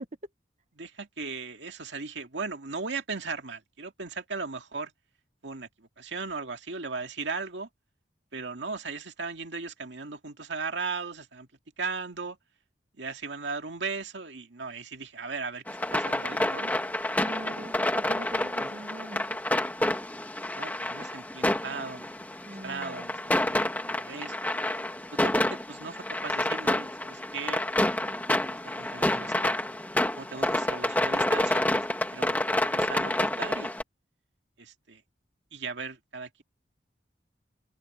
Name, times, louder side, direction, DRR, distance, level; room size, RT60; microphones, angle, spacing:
voice 1, 0.8-4.9 5.4-7.7 8.3-11.5 11.8-12.4 12.9-15.6 15.9-16.7 18.6-18.7 20.6-22.1 22.6-24.6 25.1-27.8 28.5-29.6 30.2-31.6 32.1-32.4 32.6-33.7 34.6-35.0 35.5-36.4, right 4 dB, 80° right, 2.1 m, -37 dB
sound 1, 15.7-33.8, left 1 dB, 10° left, 1.4 m, -28 dB
voice 2, 17.2-19.4 22.5-23.2, right 1 dB, 40° right, 1.0 m, -43 dB
head